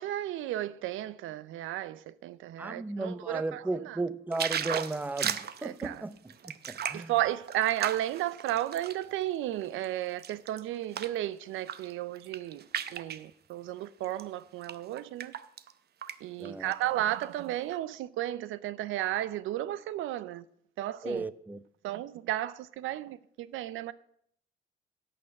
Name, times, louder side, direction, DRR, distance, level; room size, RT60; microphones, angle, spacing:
voice 1, 0.0-4.0 5.6-6.0 6.9-12.6 12.9-15.3 16.2-20.4 20.8-21.2 21.8-23.9, right 13 dB, 90° right, 0.5 m, -33 dB
voice 2, 2.6-7.1 16.4-16.7 21.0-21.6, right 2 dB, 10° right, 0.5 m, -35 dB
sound 1, 4.3-9.0 9.5-11.2 11.6-11.9 12.2-13.2 14.0-14.2 14.6-15.7 16.0-16.2 16.4-17.3 17.7-17.8, right 9 dB, 55° right, 0.7 m, -36 dB
11.0 x 6.6 x 7.6 m
cardioid pair, 90°, 20 cm